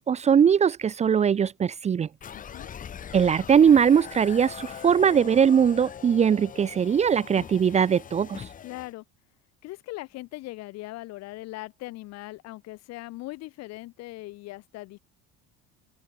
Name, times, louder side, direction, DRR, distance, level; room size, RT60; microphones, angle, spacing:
voice 1, 0.0-2.1 3.1-8.5, right 7 dB, 20° right, 1.0 m, -21 dB
sound 1, 2.2-8.9, left 8 dB, 25° left, 3.7 m, -41 dB
voice 2, 2.3-2.7 8.6-9.0 9.6-15.0, left 19 dB, 60° left, 5.7 m, -40 dB
open air
cardioid pair, 170°, 30 cm